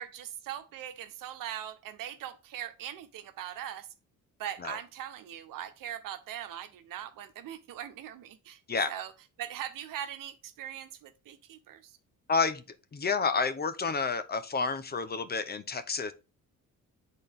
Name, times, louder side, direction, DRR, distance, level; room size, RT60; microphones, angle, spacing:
voice 1, 0.0-3.9 4.4-8.6 8.9-9.1 9.4-11.9, right 11 dB, 80° right, 1.1 m, -40 dB
voice 2, 12.3-12.6 12.9-16.1, left 4 dB, 30° left, 0.7 m, -30 dB
8.7 x 4.1 x 3.6 m
cardioid pair, 125°, 33 cm